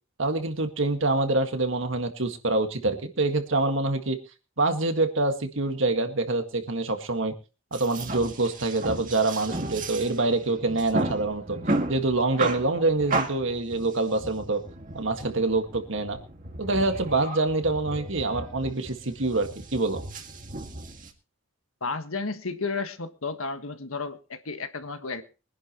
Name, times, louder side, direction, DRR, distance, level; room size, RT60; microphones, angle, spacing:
voice 1, 0.2-4.2 4.6-7.3 7.7-11.6 11.9-14.6 14.9-16.2 16.6-20.0, right 2 dB, 65° right, 1.9 m, -26 dB
sound 1, 7.7-21.1, right 2 dB, 40° right, 2.0 m, -34 dB
voice 2, 21.8-25.2, left 4 dB, 80° left, 1.5 m, -32 dB
23.5 x 10.5 x 3.1 m
head